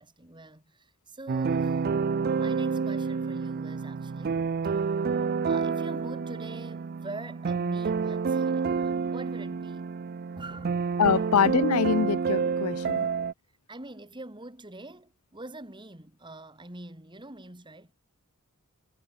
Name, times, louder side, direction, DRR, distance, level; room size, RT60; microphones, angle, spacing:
voice 1, 0.0-1.9 2.3-10.0 10.3-11.3 13.7-17.9, right 2 dB, 20° right, 3.4 m, -45 dB
sound 1, 1.3-13.3, right 5 dB, 45° right, 0.4 m, -29 dB
voice 2, 11.0-13.1, left 6 dB, 90° left, 0.6 m, -24 dB
head